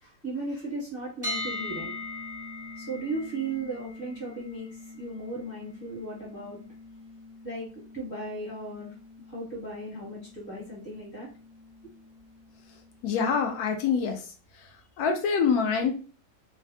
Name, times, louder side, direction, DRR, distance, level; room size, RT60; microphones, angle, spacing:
voice 1, 0.0-1.9 2.7-6.6 7.4-8.9 9.3-11.3, right 2 dB, 35° left, -4 dB, 1.3 m, -36 dB
sound 1, 1.2-13.1, left 2 dB, 20° right, 0.7 m, -42 dB
voice 2, 13.0-14.2 15.0-15.9, left 6 dB, 70° left, 5 dB, 0.9 m, -25 dB
3.3 x 2.1 x 2.6 m, 0.37 s
omnidirectional pair, 1.9 m